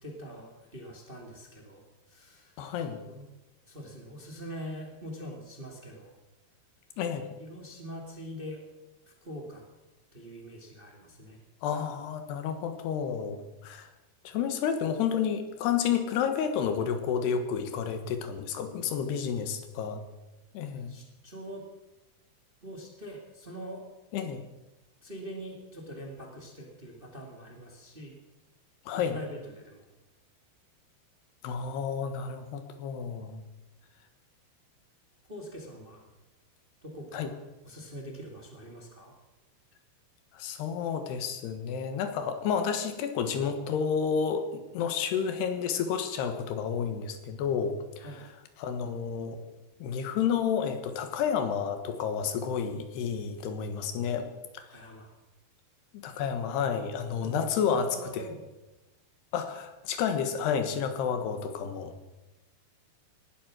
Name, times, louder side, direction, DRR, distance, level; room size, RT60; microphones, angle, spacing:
voice 1, 0.0-3.3 3.7-6.1 7.4-8.7 9.2-9.6 10.1-11.4 19.2-19.3 20.7-21.6 22.6-23.9 25.0-28.1 28.9-29.9 35.3-36.0 36.8-37.3 37.6-39.1 48.0-48.2 53.7-53.9 54.7-55.1 57.2-58.4, equal, 20° right, 1 dB, 1.6 m, -43 dB
voice 2, 2.6-3.0 7.0-7.2 11.6-13.9 14.2-20.0 20.5-20.9 24.1-24.4 28.9-29.2 31.4-33.4 37.1-37.3 40.3-48.1 48.6-49.4 49.8-54.3 54.5-54.6 55.9-57.9 58.1-58.2 59.3-61.9, left 7 dB, 90° left, 8 dB, 3.5 m, -30 dB
18.5 x 12.0 x 6.3 m, 1.0 s
omnidirectional pair, 4.7 m